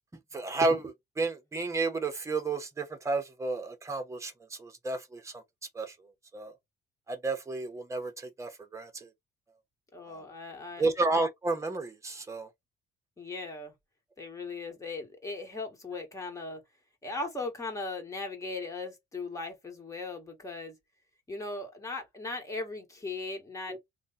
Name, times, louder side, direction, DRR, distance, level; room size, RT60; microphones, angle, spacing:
voice 1, 0.3-5.4 5.7-6.0 6.3-6.5 7.1-9.1 10.1-10.2 10.8-12.5 23.7-23.8, right 3 dB, 15° right, 1.0 m, -32 dB
voice 2, 9.9-10.8 13.2-13.7 14.2-16.6 17.0-20.8 21.3-23.8, left 3 dB, 20° left, 1.5 m, -38 dB
3.1 x 2.3 x 4.0 m
cardioid pair, 110°, 17 cm